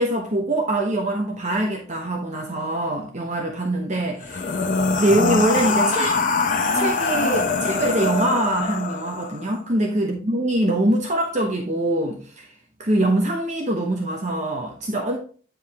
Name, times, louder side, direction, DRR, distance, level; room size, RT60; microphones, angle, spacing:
voice 1, 0.0-4.6 5.0-6.2 6.7-12.5 12.8-15.2, right 1 dB, 35° right, 0.9 m, -23 dB
sound 1, 4.2-9.4, left 4 dB, 40° left, 0.7 m, -23 dB
9.2 x 4.8 x 3.5 m
head